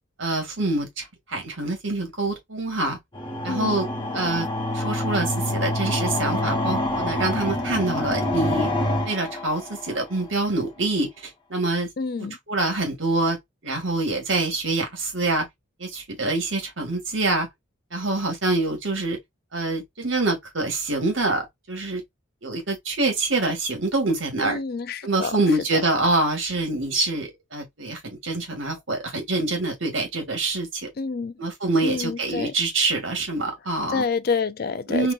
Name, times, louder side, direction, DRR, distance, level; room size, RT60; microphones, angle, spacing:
voice 1, 0.2-3.0 3.4-3.9 4.1-4.5 4.7-8.7 9.0-11.9 12.2-13.4 13.6-15.5 15.8-17.5 17.9-19.2 19.5-22.0 22.4-24.6 25.0-30.9 31.4-34.1 34.9-35.1, right 2 dB, 70° right, 1.8 m, -25 dB
sound 1, 3.1-10.1, left 1 dB, 25° left, 1.1 m, -26 dB
voice 2, 3.4-3.8 12.0-12.4 24.4-25.3 25.7-25.8 31.0-31.3 31.8-32.5 33.9-35.1, left 5 dB, 45° left, 0.3 m, -28 dB
3.7 x 3.0 x 2.5 m
head